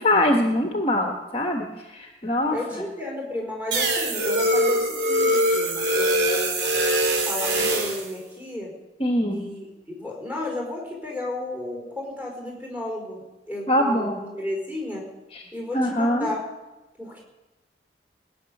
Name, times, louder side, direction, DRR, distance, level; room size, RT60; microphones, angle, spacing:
voice 1, 0.0-1.7 1.9-2.8 9.0-9.5 13.7-14.2 15.3-15.4 15.7-16.3, left 1 dB, 35° left, 2 dB, 1.3 m, -23 dB
voice 2, 2.5-6.7 7.3-8.7 9.3-15.0 15.5-16.4 17.0-17.2, left 1 dB, 10° right, -2 dB, 4.5 m, -33 dB
sound 1, 3.7-8.1, right 1 dB, 85° right, 3.4 m, -22 dB
20.0 x 6.8 x 9.7 m, 1.1 s
head